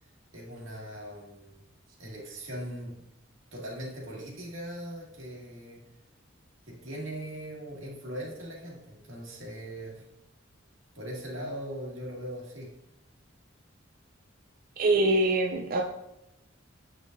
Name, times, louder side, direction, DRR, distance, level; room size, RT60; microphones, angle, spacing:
voice 1, 0.3-1.6 2.0-3.0 3.5-5.8 6.7-10.0 10.9-12.7, equal, 85° right, -3 dB, 2.0 m, -40 dB
voice 2, 14.8-15.8, right 2 dB, 45° right, 1 dB, 0.4 m, -24 dB
8.2 x 5.2 x 2.6 m, 0.85 s
head